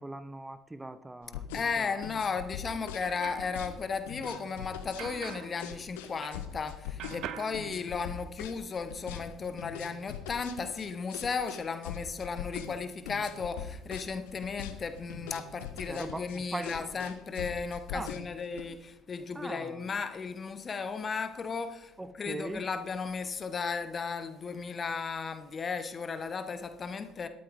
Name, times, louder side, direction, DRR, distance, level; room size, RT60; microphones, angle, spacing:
voice 1, 0.0-1.5 1.8-2.0 15.9-17.0 17.9-18.1 19.3-19.8 22.0-22.6, right 2 dB, 15° right, 1.0 m, -40 dB
sound 1, 1.2-18.6, left 10 dB, 65° left, 1.1 m, -42 dB
voice 2, 1.5-27.3, left 5 dB, 35° left, 1.2 m, -35 dB
sound 2, 2.6-6.7 7.0-8.5, right 11 dB, 55° right, 0.7 m, -46 dB
13.0 x 12.5 x 3.6 m
figure-of-eight pair, 55°, 0 cm